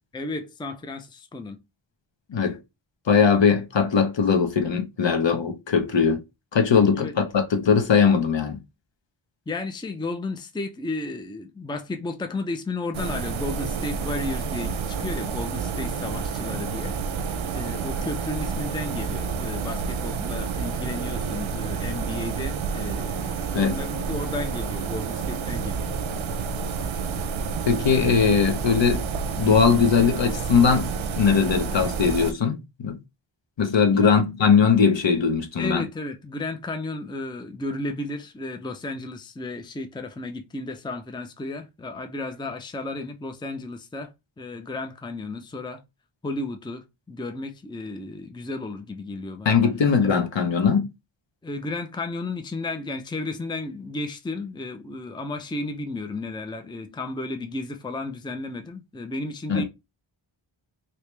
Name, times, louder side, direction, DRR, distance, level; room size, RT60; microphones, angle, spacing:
voice 1, 0.1-1.6 7.0-7.1 9.5-16.9 17.5-26.0 33.9-34.2 35.6-45.8 46.2-49.6 50.0-50.1 51.4-59.6, left 2 dB, 10° left, 0.5 m, -33 dB
voice 2, 3.1-6.2 6.5-8.6 23.5-23.8 27.7-29.0 29.4-32.9 33.6-35.8 49.4-50.9 59.5-59.6, left 6 dB, 65° left, 0.9 m, -20 dB
sound 1, 12.9-32.3, right 5 dB, 75° right, 0.6 m, -29 dB
3.1 x 2.9 x 3.2 m
wide cardioid pair, 85°, 47 cm